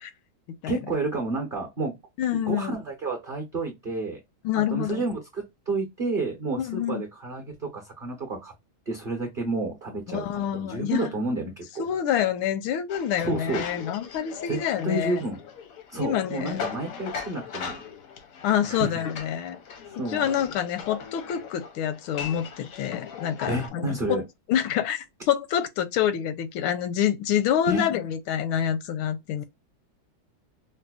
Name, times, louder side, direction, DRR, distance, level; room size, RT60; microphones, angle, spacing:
voice 1, 0.7-1.9 2.3-4.2 4.7-8.5 8.9-11.8 13.2-13.6 14.5-15.4 15.9-17.8 18.7-19.0 20.0-20.2 23.5-24.2 27.7-27.9, right 2 dB, 45° right, 0.7 m, -30 dB
voice 2, 2.2-2.8 4.4-5.0 6.6-7.0 10.1-11.1 11.8-15.2 16.0-16.7 18.4-19.6 20.1-24.2 24.5-29.4, left 10 dB, 85° left, 1.4 m, -27 dB
sound 1, 12.9-23.7, left 7 dB, 70° left, 0.8 m, -39 dB
5.3 x 2.1 x 2.3 m
omnidirectional pair, 2.2 m